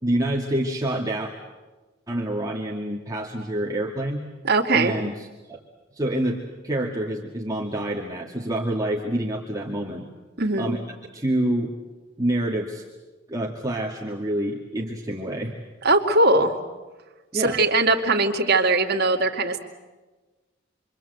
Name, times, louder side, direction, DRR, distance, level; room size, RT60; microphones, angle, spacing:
voice 1, 0.0-1.3 2.1-4.2 4.7-5.2 5.5-5.6 5.9-10.1 10.6-10.8 11.1-11.7 12.2-12.8 13.3-15.5 17.3-17.6, right 1 dB, 20° right, -2 dB, 2.1 m, -27 dB
voice 2, 4.4-4.9 10.4-10.8 15.8-16.5 17.3-19.6, right 2 dB, 50° right, 2 dB, 2.5 m, -20 dB
27.5 x 24.5 x 8.1 m, 1.3 s
head